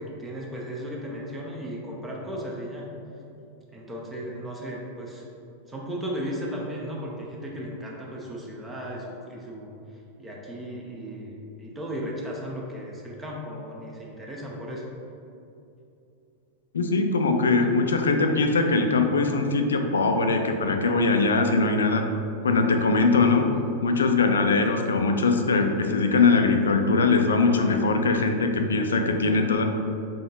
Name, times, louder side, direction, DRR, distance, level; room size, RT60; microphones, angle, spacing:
voice 1, 0.0-2.9 3.7-5.2 5.7-9.7 10.2-14.8, equal, 15° right, -2 dB, 0.6 m, -35 dB
voice 2, 16.7-22.1 22.4-23.4 23.8-29.6, left 3 dB, 70° left, 5 dB, 0.4 m, -21 dB
3.8 x 3.7 x 3.8 m, 2.7 s
figure-of-eight pair, 90°, 0 cm